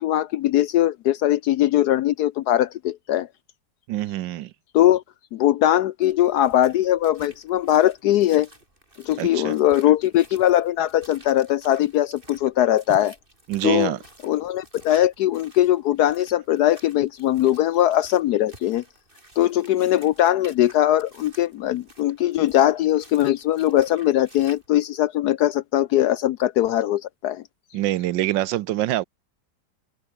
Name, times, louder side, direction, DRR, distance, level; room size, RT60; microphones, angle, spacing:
voice 1, 0.0-3.3 4.7-5.0 5.3-8.5 9.0-13.1 13.6-14.0 14.2-18.8 19.4-27.4, left 13 dB, 70° left, 0.9 m, -20 dB
voice 2, 3.9-4.5 9.2-9.5 13.5-14.0 27.7-29.0, right 14 dB, 75° right, 1.3 m, -25 dB
sound 1, 6.0-24.7, right 1 dB, 25° right, 6.6 m, -51 dB
open air
omnidirectional pair, 2.1 m